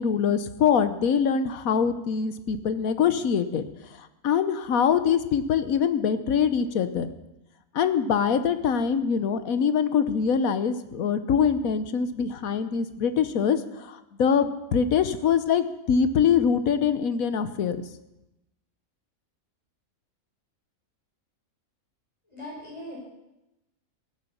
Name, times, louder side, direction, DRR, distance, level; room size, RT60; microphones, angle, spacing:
voice 1, 0.0-7.1 7.7-17.8, left 7 dB, 85° left, 11 dB, 1.3 m, -24 dB
voice 2, 22.3-23.0, left 1 dB, 20° left, -6 dB, 6.1 m, -39 dB
15.5 x 9.8 x 7.1 m, 0.95 s
omnidirectional pair, 1.4 m